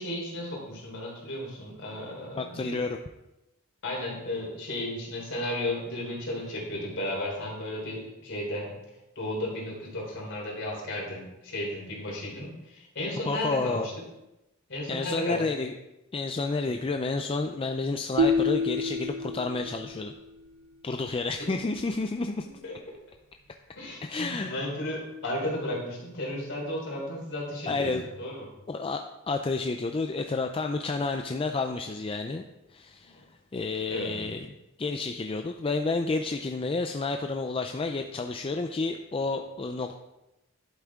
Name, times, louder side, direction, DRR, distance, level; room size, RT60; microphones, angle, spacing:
voice 1, 0.0-2.8 3.8-8.7 9.2-13.9 14.7-15.5 16.6-16.7 21.4-21.5 22.6-22.7 23.8-28.5 33.0-33.1 33.9-34.3, left 1 dB, 55° left, -3 dB, 3.9 m, -34 dB
voice 2, 2.4-2.9 13.3-13.9 14.9-15.7 16.1-20.1 20.8-22.5 24.0-24.6 27.7-28.0 28.7-29.0 29.3-32.4 32.7-33.2 33.5-34.5 34.8-40.0, left 3 dB, 25° left, 5 dB, 0.4 m, -30 dB
sound 1, 18.2-20.3, left 2 dB, 85° right, 0.8 m, -28 dB
11.5 x 8.2 x 3.6 m, 0.94 s
head